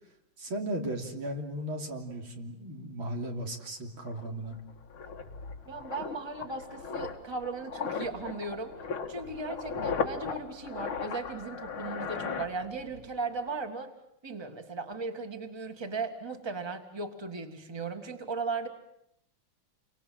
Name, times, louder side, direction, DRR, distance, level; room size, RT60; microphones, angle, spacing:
voice 1, 0.4-4.6, right 1 dB, 80° right, 2 dB, 4.1 m, -36 dB
sound 1, 3.7-3.8 4.0-13.1 13.4-13.6, left 5 dB, 85° left, 2.7 m, -37 dB
voice 2, 5.7-8.7 9.1-13.9 14.2-18.7, right 3 dB, 15° right, 6 dB, 1.8 m, -37 dB
29.5 x 24.5 x 7.7 m, 0.77 s
omnidirectional pair, 2.2 m